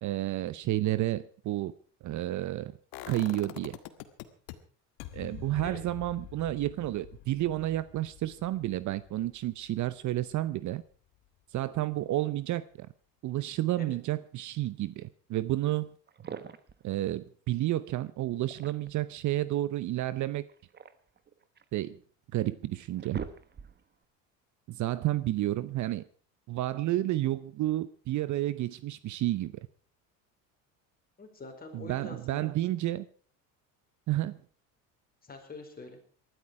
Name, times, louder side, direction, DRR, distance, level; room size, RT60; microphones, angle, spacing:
voice 1, 0.0-1.7 2.0-2.7 3.1-3.8 5.1-10.8 11.5-12.9 13.2-15.9 16.8-20.4 21.7-22.0 22.3-23.2 24.7-26.0 26.5-29.5 31.7-33.1 34.1-34.4, right 15 dB, 50° right, 0.7 m, -31 dB
sound 1, 2.9-4.5 5.0-10.8 11.2-11.3, left 14 dB, 70° left, 1.7 m, -46 dB
sound 2, 16.1-16.8 18.3-19.1 20.4-21.8 22.4-22.5 22.8-23.9, right 7 dB, 25° right, 1.1 m, -43 dB
voice 2, 31.2-32.5 35.2-36.0, left 3 dB, 25° left, 4.7 m, -45 dB
19.5 x 12.5 x 4.8 m
cardioid pair, 115°, 39 cm